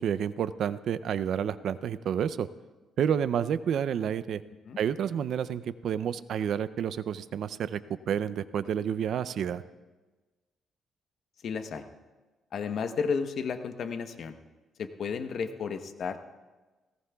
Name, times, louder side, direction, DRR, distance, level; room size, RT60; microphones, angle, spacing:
voice 1, 0.0-2.5 3.0-4.4 4.8-7.8 8.1-9.6, right 8 dB, 65° right, 15 dB, 0.5 m, -29 dB
voice 2, 11.4-11.9 12.5-14.3 14.8-16.2, left 6 dB, 65° left, 8 dB, 1.0 m, -32 dB
18.5 x 18.0 x 2.3 m, 1.2 s
cardioid pair, 90°, 0 cm